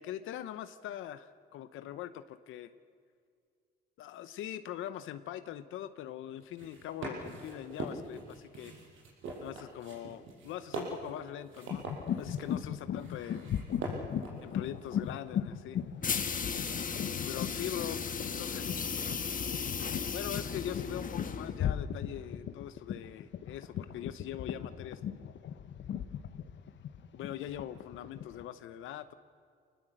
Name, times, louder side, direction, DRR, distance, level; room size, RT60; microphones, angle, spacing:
voice 1, 0.0-2.7 4.0-8.7 9.4-11.8 12.2-13.5 14.4-15.8 17.2-18.0 18.4-18.7 20.1-25.3 27.1-29.1, left 11 dB, 85° left, 12 dB, 0.8 m, -42 dB
sound 1, 6.4-15.2 15.8-16.4, right 3 dB, 80° right, 6.4 m, -43 dB
sound 2, 11.7-28.4, left 9 dB, 65° left, 1.1 m, -37 dB
sound 3, 16.0-21.6, left 6 dB, 45° left, 1.6 m, -36 dB
25.5 x 19.5 x 7.8 m, 2.2 s
cardioid pair, 90°, 20 cm